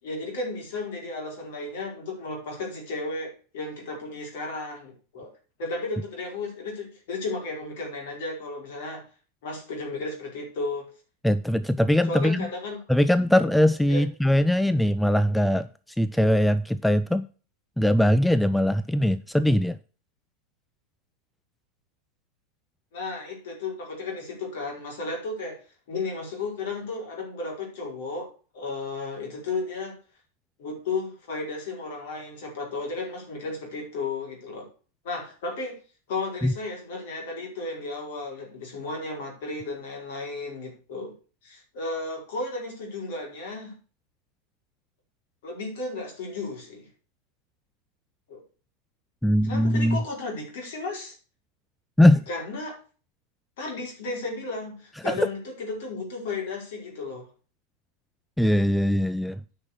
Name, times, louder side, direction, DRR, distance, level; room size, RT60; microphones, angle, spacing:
voice 1, 0.0-5.3 5.6-9.0 9.4-10.9 12.1-12.8 13.9-14.0 22.9-25.6 25.9-29.9 30.6-34.7 35.0-35.8 36.1-41.1 41.4-43.7 45.4-46.9 48.3-48.4 49.4-51.2 52.3-52.8 53.6-57.3, left 3 dB, 55° left, 4.7 m, -34 dB
voice 2, 11.2-12.5 12.9-17.2 17.8-19.8 36.4-36.5 49.2-50.0 52.0-52.2 55.0-55.2 58.4-59.4, left 1 dB, ahead, 0.4 m, -21 dB
9.7 x 5.9 x 6.5 m
figure-of-eight pair, 90°, 0 cm